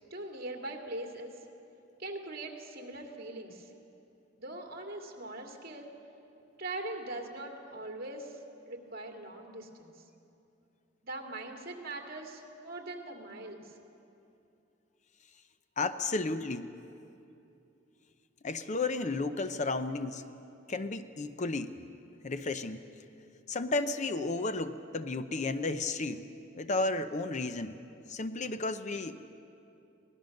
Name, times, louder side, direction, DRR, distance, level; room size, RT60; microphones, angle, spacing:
voice 1, 0.1-1.3 2.0-3.7 4.4-5.9 6.6-8.4 8.7-9.9 11.0-13.7, right 2 dB, 50° right, 2 dB, 2.4 m, -41 dB
voice 2, 15.8-16.8 18.4-20.2 20.7-21.8 22.2-22.8 23.5-26.3 26.5-27.8 28.1-29.3, left 3 dB, 40° left, 11 dB, 0.6 m, -33 dB
24.5 x 18.5 x 6.5 m, 2.7 s
head